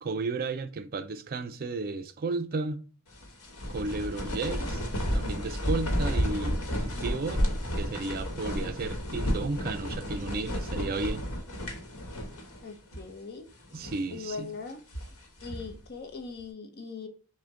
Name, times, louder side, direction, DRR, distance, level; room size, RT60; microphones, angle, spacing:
voice 1, 0.0-2.8 3.7-4.8 5.1-7.4 7.7-11.2 13.7-14.5, right 3 dB, 45° right, 0.4 m, -33 dB
sound 1, 3.1-12.6 12.9-13.0 13.6-14.1 14.7-15.8, equal, 85° left, 1.1 m, -32 dB
voice 2, 12.6-13.5 14.1-14.8 15.4-17.1, left 4 dB, 50° left, 0.7 m, -40 dB
6.0 x 2.2 x 3.7 m
head